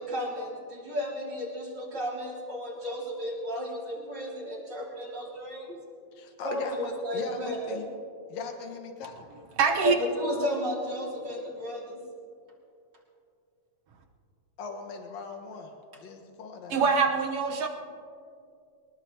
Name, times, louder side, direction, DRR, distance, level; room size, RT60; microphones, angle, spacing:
voice 1, 0.0-5.8 6.4-7.8 9.8-12.0, left 1 dB, 35° right, -4 dB, 3.2 m, -33 dB
voice 2, 6.2-7.9 8.3-9.3 14.6-16.8, left 4 dB, 70° left, 3 dB, 2.6 m, -39 dB
voice 3, 9.6-10.0 16.7-17.7, right 5 dB, 65° right, 4 dB, 1.9 m, -24 dB
23.0 x 20.0 x 2.9 m, 2.4 s
omnidirectional pair, 3.4 m